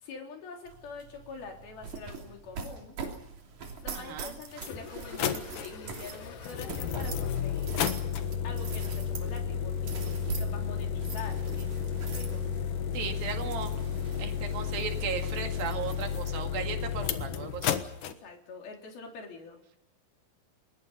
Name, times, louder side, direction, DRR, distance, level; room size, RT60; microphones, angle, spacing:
voice 1, 0.0-3.0 3.8-8.0 8.4-12.5 18.0-19.8, left 4 dB, 85° left, 2 dB, 5.6 m, -45 dB
sound 1, 0.7-17.8, right 5 dB, 55° right, 4.3 m, -44 dB
sound 2, 3.9-4.0 4.5-18.1, left 8 dB, 70° left, 2.8 m, -32 dB
voice 2, 3.9-4.4 12.9-13.7 14.2-17.8, right 7 dB, 75° right, 5 dB, 3.9 m, -36 dB
28.5 x 20.5 x 5.7 m, 0.76 s
omnidirectional pair, 4.2 m